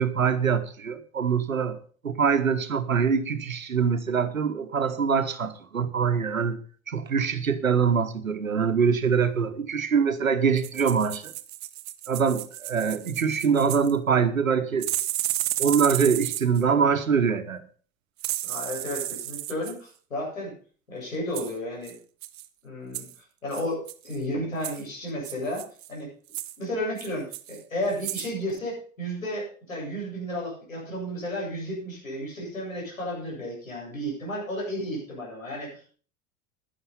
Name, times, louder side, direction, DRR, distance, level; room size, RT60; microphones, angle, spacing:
voice 1, 0.0-1.8 2.0-6.6 6.9-11.3 12.1-14.9 15.6-17.6, right 6 dB, 90° right, 1.2 m, -24 dB
sound 1, 10.6-13.9 14.8-16.6 18.2-19.7 21.3-21.5 21.8-22.0 22.2-22.5 22.9-23.2 23.5-24.2 24.6-24.8 25.2-25.9 26.3-26.6 27.0-27.6 27.9-28.3 28.6-28.7, right 15 dB, 45° right, 1.2 m, -33 dB
voice 2, 18.4-20.5 20.9-22.0 22.6-23.1 23.4-25.6 25.9-26.1 26.6-35.9, equal, 90° left, 7.9 m, -33 dB
11.0 x 11.0 x 5.5 m
figure-of-eight pair, 75°, 39 cm